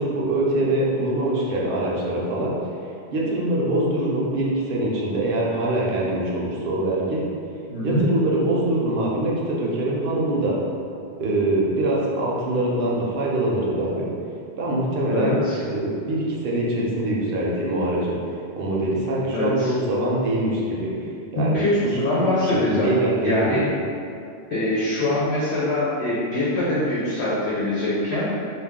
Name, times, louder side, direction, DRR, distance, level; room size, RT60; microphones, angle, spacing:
voice 1, 0.0-2.5 3.1-7.2 7.8-10.6 11.2-14.1 14.6-15.4 15.7-18.1 18.6-20.9 21.3-21.6 21.9-22.0 22.4-23.6, right 1 dB, 60° right, -4 dB, 0.7 m, -23 dB
voice 2, 7.7-8.0 15.1-15.6 19.3-19.7 21.3-22.9 23.2-23.6 24.5-28.3, left 1 dB, 70° left, -9 dB, 1.0 m, -23 dB
2.3 x 2.2 x 3.5 m, 2.4 s
omnidirectional pair, 1.2 m